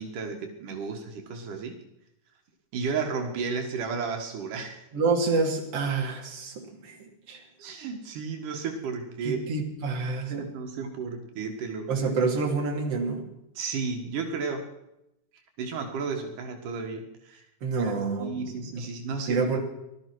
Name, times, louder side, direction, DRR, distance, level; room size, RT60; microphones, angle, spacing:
voice 1, 0.0-1.7 2.7-4.8 7.6-9.5 10.3-11.9 13.5-14.6 15.6-17.4 17.8-17.9 18.2-19.4, right 5 dB, 85° right, 4 dB, 3.3 m, -33 dB
voice 2, 4.9-7.4 9.2-10.4 11.9-13.3 17.6-18.5 19.3-19.6, right 4 dB, 50° right, 0 dB, 3.5 m, -28 dB
18.5 x 12.5 x 6.1 m, 0.85 s
omnidirectional pair, 3.6 m